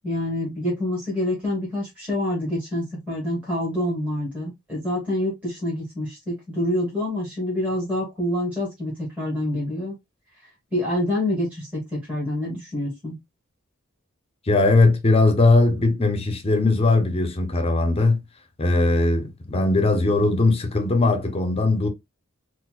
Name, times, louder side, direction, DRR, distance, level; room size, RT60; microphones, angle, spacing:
voice 1, 0.0-9.9 10.7-13.2, left 1 dB, 5° right, 1.4 m, -27 dB
voice 2, 14.5-18.2 18.6-21.9, left 2 dB, 30° left, 0.7 m, -19 dB
4.3 x 2.1 x 2.3 m
head